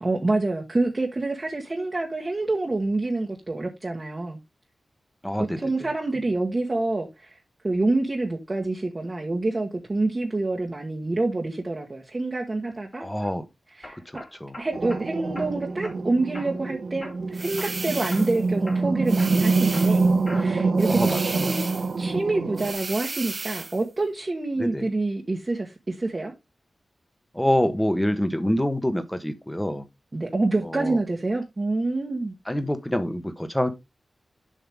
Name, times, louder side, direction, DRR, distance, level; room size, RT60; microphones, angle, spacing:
voice 1, 0.0-4.4 5.6-7.4 7.6-13.1 13.8-14.2 14.6-21.7 22.0-26.3 30.1-32.4, right 2 dB, 35° right, 1.4 m, -27 dB
voice 2, 5.2-5.6 13.0-13.4 13.9-14.0 14.4-14.6 20.9-21.6 24.6-24.9 27.3-29.8 30.6-31.0 32.5-33.7, equal, 5° left, 1.2 m, -26 dB
sound 1, 12.9-13.3 13.8-15.0 15.3-16.0 16.3-16.7 17.0-17.8 18.1-18.3 18.7-20.7 21.1-21.6, left 2 dB, 35° left, 2.3 m, -43 dB
sound 2, 14.7-22.7, right 3 dB, 70° right, 1.0 m, -25 dB
sound 3, 17.3-18.4 19.1-20.2 20.8-22.0 22.6-23.8, right 3 dB, 50° right, 0.6 m, -34 dB
7.6 x 5.7 x 3.5 m
wide cardioid pair, 85°, 0 cm